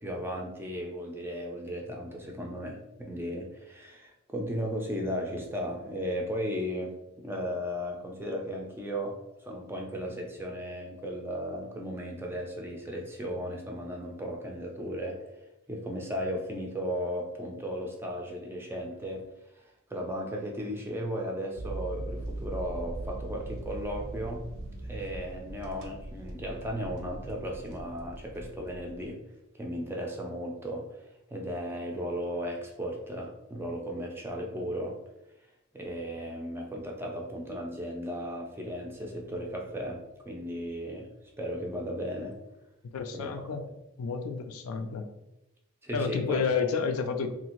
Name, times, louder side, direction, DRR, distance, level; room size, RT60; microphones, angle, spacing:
voice 1, 0.0-15.2 15.7-19.3 19.5-19.6 19.9-24.4 24.8-29.2 29.6-31.0 31.3-35.0 35.7-41.1 41.4-42.4 43.1-43.3 45.8-46.4, equal, 10° right, 1 dB, 0.3 m, -35 dB
sound 1, 21.6-29.1, right 2 dB, 90° right, 0.5 m, -40 dB
voice 2, 42.9-43.6 44.0-45.1 45.9-47.3, left 5 dB, 80° left, 7 dB, 0.4 m, -30 dB
2.7 x 2.5 x 2.9 m, 0.91 s
head